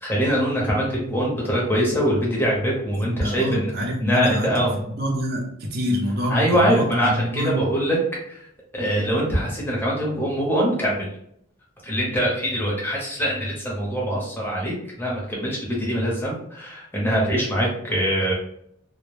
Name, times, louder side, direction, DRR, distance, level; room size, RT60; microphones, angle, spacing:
voice 1, 0.0-3.7 4.0-4.7 6.3-8.0 8.3-8.5 8.7-11.1 11.8-18.3, equal, 10° left, -4 dB, 0.6 m, -23 dB
voice 2, 3.0-4.6 4.9-7.6, equal, 50° right, 1 dB, 0.5 m, -26 dB
2.0 x 2.0 x 3.0 m, 0.71 s
head